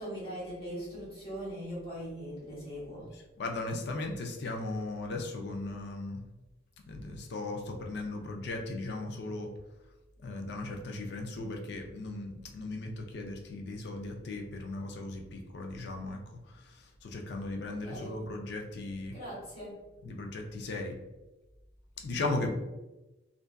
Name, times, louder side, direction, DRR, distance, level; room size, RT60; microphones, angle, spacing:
voice 1, 0.0-3.1 17.6-18.2 19.1-19.8, equal, 30° left, -8 dB, 1.2 m, -40 dB
voice 2, 3.1-6.2 6.9-9.5 10.2-16.2 16.5-19.2 20.0-21.0 22.0-22.5, left 2 dB, 55° left, 2 dB, 0.4 m, -37 dB
2.5 x 2.2 x 2.2 m, 1.0 s
head